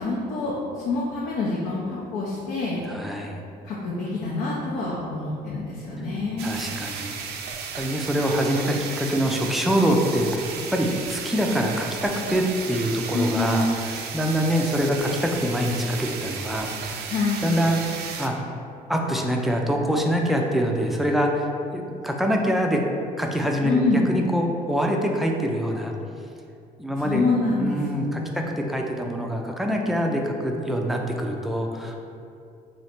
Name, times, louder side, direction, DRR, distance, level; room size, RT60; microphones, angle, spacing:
voice 1, 0.0-2.8 3.6-6.5 13.1-13.7 17.1-17.5 23.6-24.0 27.0-28.6, left 3 dB, 75° left, -5 dB, 0.7 m, -26 dB
voice 2, 2.9-3.4 6.4-7.2 7.7-17.1 17.4-17.8 18.2-18.3 18.9-21.5 21.7-22.8 23.2-25.9 26.8-27.2 27.6-32.0, equal, ahead, 1 dB, 0.4 m, -25 dB
sound 1, 6.4-18.3, right 6 dB, 75° right, 0.4 m, -34 dB
3.1 x 2.8 x 4.3 m, 2.5 s
cardioid pair, 110°, 17 cm